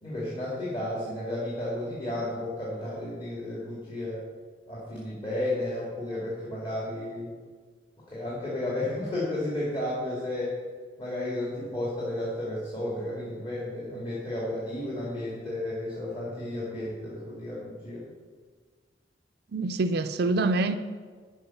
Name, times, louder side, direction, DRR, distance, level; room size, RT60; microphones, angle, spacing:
voice 1, 0.0-4.2 4.7-7.3 8.1-10.6 11.0-18.0, left 1 dB, 30° left, -6 dB, 2.2 m, -33 dB
voice 2, 19.5-20.8, right 2 dB, 60° right, 10 dB, 0.5 m, -25 dB
12.0 x 4.8 x 5.8 m, 1.6 s
head